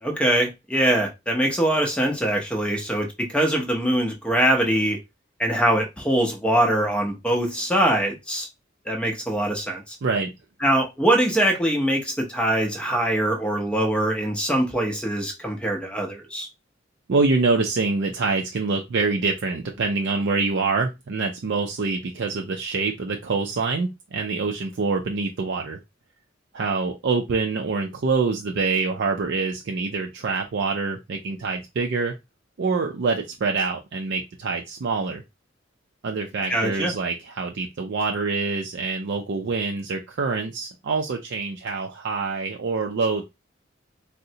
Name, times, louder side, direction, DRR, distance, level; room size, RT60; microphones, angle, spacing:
voice 1, 0.0-5.0 5.4-8.5 8.9-10.0 10.6-16.5 36.5-36.9, right 1 dB, 5° left, 0.6 m, -23 dB
voice 2, 10.0-10.3 17.1-25.8 26.5-32.1 32.6-35.2 36.0-43.2, right 4 dB, 60° right, 0.4 m, -25 dB
3.8 x 2.0 x 2.7 m
head